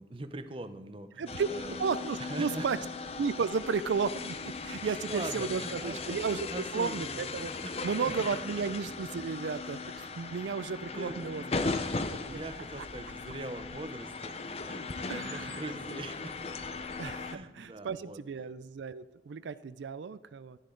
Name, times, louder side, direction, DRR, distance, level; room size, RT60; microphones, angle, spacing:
voice 1, 0.0-1.8 2.2-2.7 4.8-7.3 7.6-8.1 8.6-8.7 10.9-14.4 14.7-16.4 17.3-18.5, right 2 dB, 30° right, 10 dB, 0.7 m, -42 dB
voice 2, 1.2-1.5 1.8-2.8 3.2-6.5 6.7-7.5 7.8-11.4 12.1-12.4 15.1-15.6 17.0-20.6, right 5 dB, 90° right, 14 dB, 0.4 m, -33 dB
sound 1, 1.3-17.4, left 4 dB, 35° left, 0.6 m, -38 dB
11.0 x 10.5 x 3.8 m, 1.2 s
head